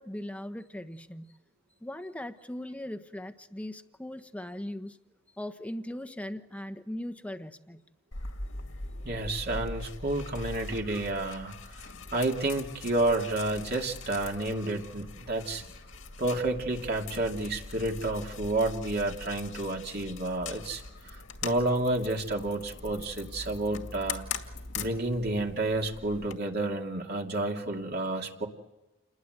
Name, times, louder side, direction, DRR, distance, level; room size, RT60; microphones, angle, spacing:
voice 1, 0.0-1.4 1.8-5.0 5.4-7.8, left 1 dB, 5° left, 8 dB, 1.2 m, -39 dB
sound 1, 8.1-26.3, left 4 dB, 65° left, 2.2 m, -42 dB
voice 2, 9.0-11.6 12.1-15.6 16.2-24.2 24.7-28.5, right 2 dB, 50° right, 1 dB, 2.8 m, -30 dB
29.5 x 21.0 x 8.1 m, 1.0 s
head